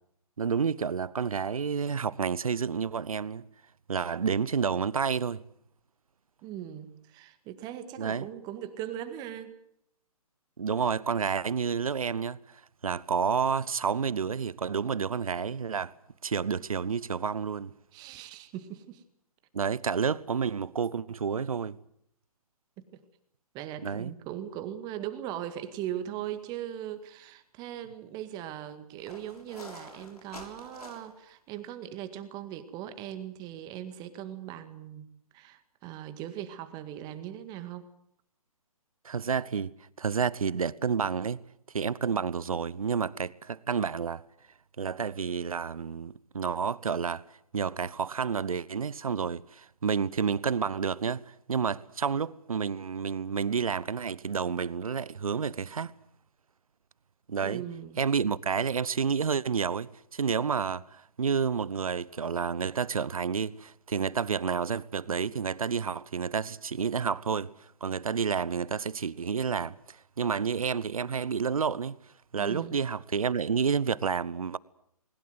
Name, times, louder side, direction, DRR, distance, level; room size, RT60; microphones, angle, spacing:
voice 1, 0.4-3.5 3.9-5.4 8.0-8.3 10.6-12.4 12.8-15.9 16.2-17.7 19.5-21.8 23.8-24.1 39.0-39.7 40.0-41.4 41.7-44.2 44.8-47.2 47.5-51.2 51.5-56.0 57.3-57.6 58.0-67.5 67.8-72.0 72.3-74.6, right 6 dB, 65° right, 0.9 m, -30 dB
voice 2, 6.4-9.6 17.9-19.0 22.8-23.0 23.5-35.1 35.3-37.9 57.4-58.0 72.3-72.8, right 11 dB, 20° right, 1.9 m, -39 dB
sound 1, 26.7-26.9 27.3-27.4 29.0-31.3, left 2 dB, 80° left, 6.7 m, -48 dB
20.5 x 20.5 x 8.0 m
figure-of-eight pair, 130°, 19 cm